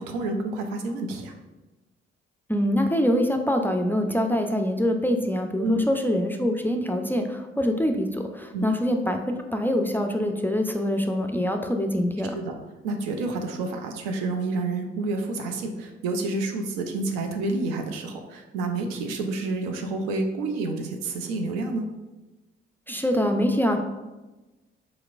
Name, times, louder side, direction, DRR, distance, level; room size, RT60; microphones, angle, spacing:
voice 1, 0.0-1.3 5.6-5.9 8.5-8.8 12.3-12.5 12.8-21.9, right 2 dB, 80° right, 4 dB, 0.5 m, -29 dB
voice 2, 2.5-9.2 9.5-12.4 22.9-23.8, equal, 5° left, 4 dB, 0.3 m, -24 dB
3.8 x 2.9 x 2.4 m, 1.1 s
hypercardioid pair, 40°, 29 cm